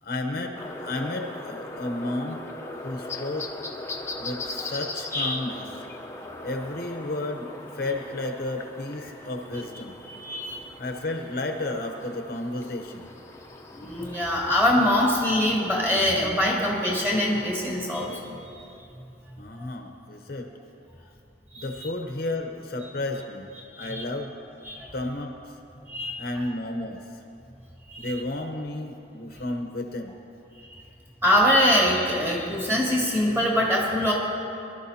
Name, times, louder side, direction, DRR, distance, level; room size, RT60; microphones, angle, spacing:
voice 1, 0.0-0.6 0.8-2.5 2.8-3.5 4.2-5.7 6.4-7.5 7.7-9.9 10.3-10.4 10.8-13.1 19.4-20.5 21.5-23.5 23.8-24.3 24.9-25.3 26.2-27.0 28.0-30.1, left 2 dB, 50° left, 4 dB, 0.8 m, -32 dB
sound 1, 0.5-18.2, left 2 dB, 15° left, 0.7 m, -39 dB
voice 2, 10.1-10.6 13.7-18.4 21.5-21.6 23.7-24.0 24.7-24.9 25.9-26.1 27.9-28.1 31.2-34.1, left 1 dB, 15° right, -4 dB, 2.3 m, -23 dB
22.5 x 12.0 x 2.8 m, 2.7 s
head